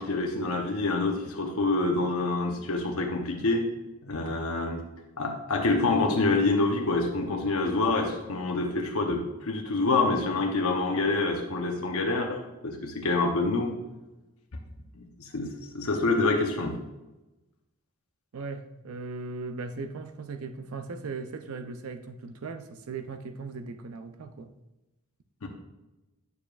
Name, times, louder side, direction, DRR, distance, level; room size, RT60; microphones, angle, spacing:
voice 1, 0.0-3.6 4.0-4.8 5.2-13.7 14.9-16.7 25.4-25.5, left 3 dB, 75° left, 1 dB, 0.8 m, -27 dB
voice 2, 18.3-24.5, right 4 dB, 80° right, 9 dB, 0.5 m, -38 dB
9.4 x 6.8 x 2.4 m, 1.0 s
head